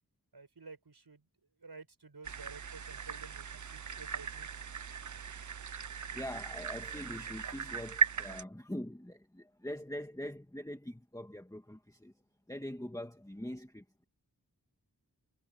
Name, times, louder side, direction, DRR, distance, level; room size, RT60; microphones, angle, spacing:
voice 1, 0.3-1.3 1.6-4.5, right 4 dB, 85° right, 5.6 m, -52 dB
sound 1, 2.2-8.4, right 6 dB, 50° right, 0.6 m, -37 dB
voice 2, 6.1-12.1 12.5-14.0, left 1 dB, 10° left, 1.9 m, -43 dB
wide cardioid pair, 50°, 38 cm